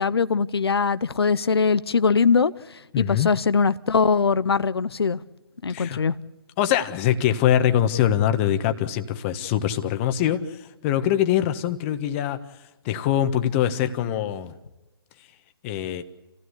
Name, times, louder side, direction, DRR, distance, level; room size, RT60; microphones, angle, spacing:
voice 1, 0.0-2.5 3.0-5.2 5.6-6.1, left 5 dB, 80° left, 15 dB, 0.8 m, -21 dB
voice 2, 2.9-3.3 5.7-6.0 6.6-12.4 12.8-14.5 15.6-16.0, left 11 dB, 30° left, 9 dB, 1.5 m, -23 dB
28.0 x 16.5 x 8.3 m, 1.1 s
figure-of-eight pair, 135°, 13 cm